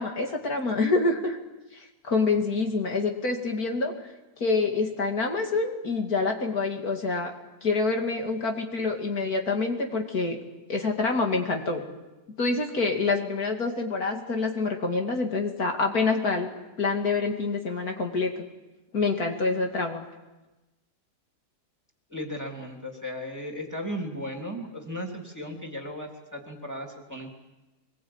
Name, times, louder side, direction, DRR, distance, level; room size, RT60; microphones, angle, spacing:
voice 1, 0.0-1.4 1.7-3.9 4.4-7.3 7.6-10.4 10.7-11.8 12.4-16.5 16.8-18.3 18.9-20.1, left 3 dB, 65° left, 2 dB, 2.9 m, -26 dB
voice 2, 22.1-27.3, equal, 10° right, 1 dB, 3.2 m, -36 dB
24.5 x 21.5 x 8.8 m, 1.1 s
omnidirectional pair, 1.7 m